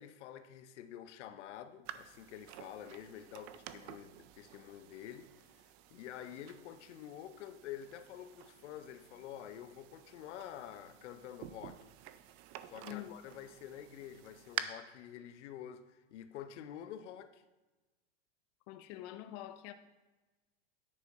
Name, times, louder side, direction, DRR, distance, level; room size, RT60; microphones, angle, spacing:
voice 1, 0.0-5.3 5.9-11.9 12.7-17.4, left 10 dB, 70° left, 0.8 m, -48 dB
sound 1, 1.9-14.6, right 13 dB, 35° right, 0.4 m, -49 dB
voice 2, 12.8-13.2 18.7-19.7, left 13 dB, 35° left, 0.4 m, -45 dB
9.8 x 6.4 x 4.1 m
supercardioid pair, 135°, 37 cm